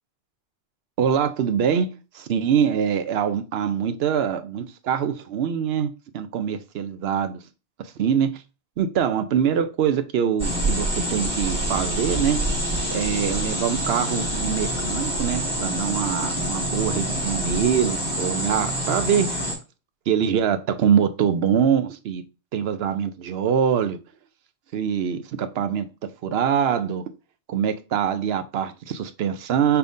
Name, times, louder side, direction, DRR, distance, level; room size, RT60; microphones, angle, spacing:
voice 1, 1.0-7.4 8.0-8.4 8.8-12.4 12.9-19.5 20.1-22.2 22.5-24.0 24.7-25.9 26.2-27.0 27.5-29.8, right 8 dB, 70° right, 0.8 m, -24 dB
sound 1, 10.4-19.5, equal, 5° right, 2.0 m, -26 dB
5.7 x 3.5 x 2.6 m
omnidirectional pair, 1.1 m